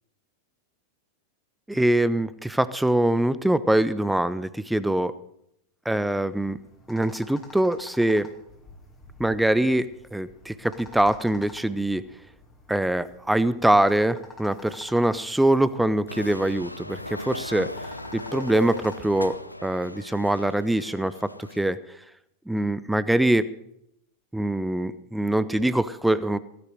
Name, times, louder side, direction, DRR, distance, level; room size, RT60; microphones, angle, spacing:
voice 1, 1.7-5.1 5.9-6.6 6.9-8.3 9.2-12.0 12.7-17.7 18.1-21.8 22.5-23.5 24.3-26.4, right 1 dB, 5° right, 16 dB, 0.7 m, -23 dB
sound 1, 6.2-19.4, left 2 dB, 15° left, 2.4 m, -48 dB
sound 2, 16.1-21.7, left 1 dB, 85° left, 0.7 m, -37 dB
16.5 x 10.5 x 6.4 m, 0.77 s
figure-of-eight pair, 90°, 0 cm